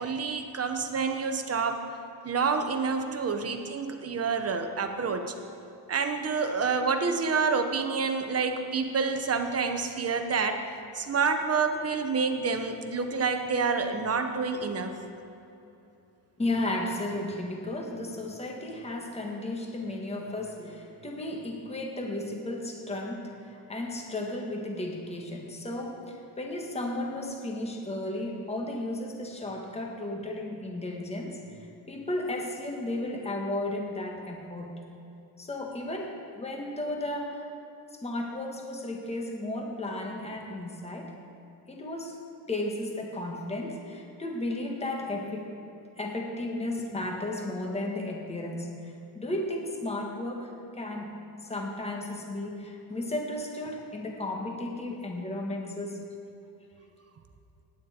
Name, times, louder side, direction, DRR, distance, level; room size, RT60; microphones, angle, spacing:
voice 1, 0.0-1.8 2.2-5.3 5.9-10.6 10.9-15.0, right 5 dB, 35° right, 6 dB, 1.0 m, -28 dB
voice 2, 16.4-34.7 35.4-37.5 37.9-41.1 41.7-42.2 42.5-45.5 46.0-51.1 51.5-56.0, left 1 dB, 15° left, 1 dB, 1.5 m, -34 dB
17.5 x 9.6 x 4.4 m, 2.8 s
cardioid pair, 135°, 44 cm